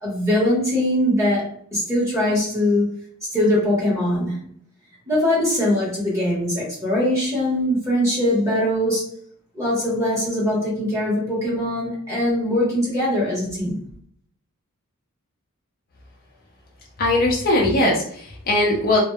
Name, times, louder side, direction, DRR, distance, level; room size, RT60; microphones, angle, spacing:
voice 1, 0.0-2.9 3.3-4.3 5.1-9.1 9.5-13.8, left 1 dB, 15° right, -6 dB, 1.1 m, -21 dB
voice 2, 17.0-19.0, left 1 dB, 45° left, -2 dB, 0.5 m, -20 dB
2.6 x 2.1 x 2.3 m, 0.62 s
head